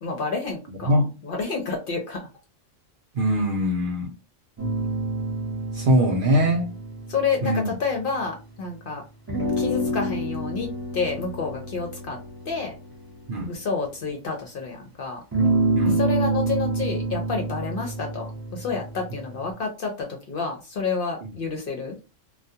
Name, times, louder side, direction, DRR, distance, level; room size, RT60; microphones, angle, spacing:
voice 1, 0.0-0.9 1.2-2.2 7.1-9.0 9.6-10.7 10.9-12.2 12.5-12.7 13.5-15.2 15.8-22.0, left 4 dB, 55° left, 0.6 m, -29 dB
voice 2, 0.8-1.1 3.1-4.1 5.7-6.7 7.4-7.7 13.3-13.5 15.8-16.0, equal, 60° right, 0.6 m, -22 dB
sound 1, 4.6-8.5 9.3-14.4 15.3-19.5, right 2 dB, 20° right, 0.8 m, -28 dB
2.3 x 2.2 x 2.6 m
omnidirectional pair, 1.3 m